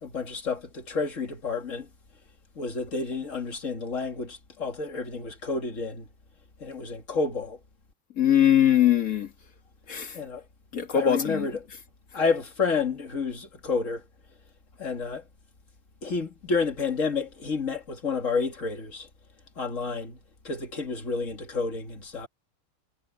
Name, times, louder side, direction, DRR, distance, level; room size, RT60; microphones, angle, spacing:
voice 1, 0.0-1.9 2.6-6.1 6.6-7.6 10.1-10.4 10.9-11.6 12.1-14.0 14.8-15.2 16.0-19.1 19.6-20.2 20.4-22.3, left 4 dB, 65° left, 2.6 m, -30 dB
voice 2, 8.2-9.3 9.9-10.2 10.7-11.5, left 10 dB, 85° left, 2.2 m, -21 dB
omnidirectional pair, 1.4 m